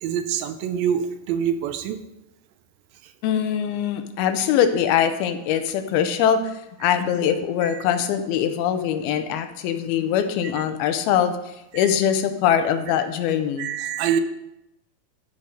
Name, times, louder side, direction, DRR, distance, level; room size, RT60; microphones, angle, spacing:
voice 1, 0.0-2.0 3.0-3.1 6.8-7.0 7.6-7.9 9.1-9.2 10.4-10.9 11.7-12.0 13.0-13.1 13.6-14.2, right 8 dB, 80° right, 9 dB, 2.4 m, -27 dB
voice 2, 3.2-6.5 6.8-13.7, left 9 dB, 85° left, 8 dB, 2.7 m, -22 dB
12.5 x 4.8 x 5.2 m, 0.88 s
omnidirectional pair, 4.3 m